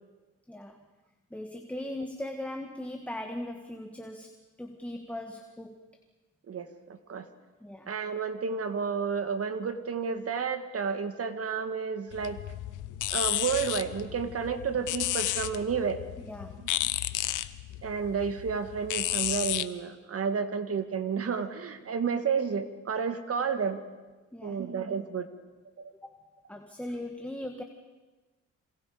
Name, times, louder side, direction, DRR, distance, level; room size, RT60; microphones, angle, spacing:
voice 1, 0.5-0.8 1.3-4.3 4.6-5.8 7.6-7.9 16.2-16.6 24.3-24.6 26.0-26.1 26.5-27.6, left 1 dB, 5° left, 3 dB, 1.9 m, -39 dB
voice 2, 6.5-7.3 7.9-12.4 13.1-16.0 17.8-23.8 24.4-25.3 25.8-25.9, right 6 dB, 50° right, 8 dB, 2.1 m, -31 dB
sound 1, 12.1-19.7, left 14 dB, 85° left, 1.0 m, -32 dB
27.5 x 26.5 x 5.2 m, 1.2 s
cardioid pair, 90°, 30 cm